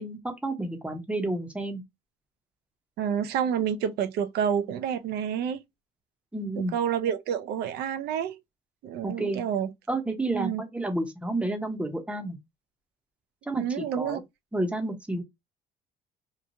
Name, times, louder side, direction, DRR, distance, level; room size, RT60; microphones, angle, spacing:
voice 1, 0.0-1.8 6.3-6.7 9.0-9.4 9.9-12.4 13.5-14.2 14.5-15.2, right 2 dB, 5° right, 0.7 m, -30 dB
voice 2, 3.0-5.6 6.6-8.4 8.8-9.7 10.3-10.6 13.6-14.2, right 8 dB, 75° right, 0.5 m, -29 dB
3.0 x 2.2 x 2.6 m
cardioid pair, 110°, 17 cm